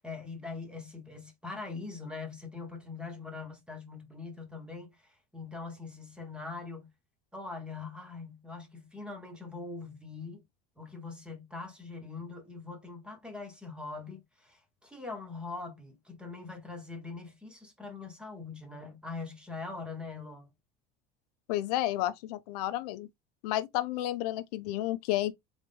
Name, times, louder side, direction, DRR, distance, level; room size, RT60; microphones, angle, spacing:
voice 1, 0.0-6.9 7.3-10.4 10.8-20.5, left 4 dB, 5° right, 1.0 m, -42 dB
voice 2, 21.5-23.1 23.4-25.3, left 14 dB, 90° left, 0.7 m, -31 dB
4.0 x 3.0 x 3.6 m
cardioid pair, 160°, 19 cm